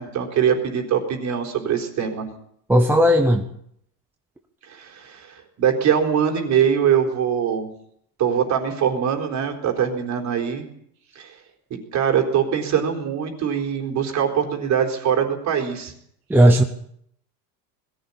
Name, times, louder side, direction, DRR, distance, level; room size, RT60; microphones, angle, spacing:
voice 1, 0.0-2.3 4.7-7.7 8.2-10.6 11.2-11.4 11.9-15.9, right 8 dB, 35° right, 3 dB, 4.1 m, -22 dB
voice 2, 2.7-3.5 16.3-16.6, equal, 5° right, 4 dB, 0.8 m, -15 dB
21.0 x 15.0 x 8.7 m, 0.70 s
supercardioid pair, 155°, 48 cm